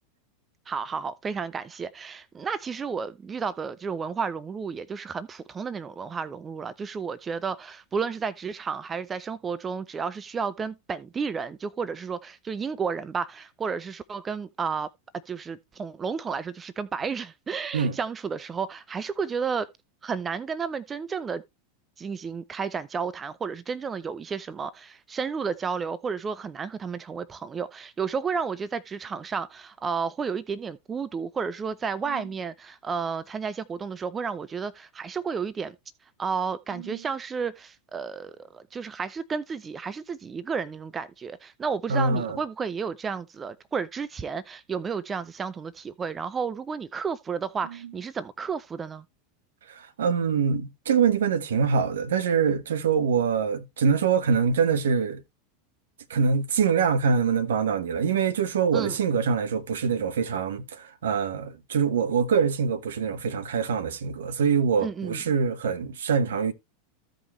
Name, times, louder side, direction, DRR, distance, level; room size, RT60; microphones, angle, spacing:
voice 1, 0.7-14.9 15.3-19.7 20.0-21.4 22.0-35.8 36.2-49.0 58.7-59.0 64.8-65.2, right 5 dB, 20° right, 0.6 m, -32 dB
voice 2, 41.9-42.4 49.7-55.2 56.1-66.5, right 6 dB, 70° right, 1.1 m, -24 dB
14.5 x 5.3 x 3.2 m
figure-of-eight pair, 85°, 0 cm